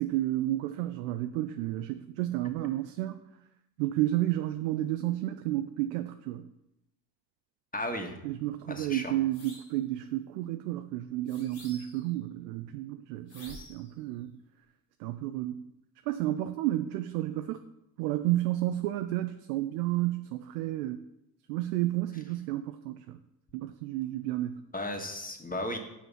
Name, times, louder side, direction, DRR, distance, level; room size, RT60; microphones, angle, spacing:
voice 1, 0.0-3.2 3.8-6.5 8.2-14.3 15.0-15.7 16.1-17.6 18.0-21.0 21.5-23.2 23.5-24.6, right 14 dB, 80° right, 9 dB, 0.6 m, -31 dB
voice 2, 7.7-8.2 8.7-9.1 24.7-25.8, left 1 dB, 15° left, 3 dB, 1.9 m, -35 dB
sound 1, 9.3-9.8 11.3-12.1 13.3-13.9, left 1 dB, 85° left, 3.4 m, -49 dB
7.4 x 5.6 x 5.7 m, 0.88 s
hypercardioid pair, 50°, 47 cm